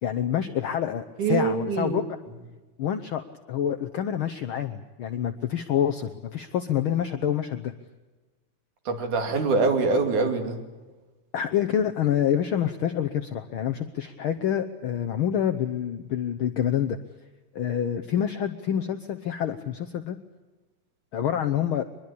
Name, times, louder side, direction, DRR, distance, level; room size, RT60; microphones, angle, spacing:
voice 1, 0.0-2.0 2.8-7.7 11.3-17.0 17.5-20.2 21.1-21.9, left 9 dB, 75° left, 8 dB, 1.2 m, -27 dB
voice 2, 1.2-2.0 8.9-10.6, right 4 dB, 75° right, 5 dB, 4.1 m, -24 dB
23.0 x 21.5 x 8.5 m, 1.2 s
omnidirectional pair, 3.5 m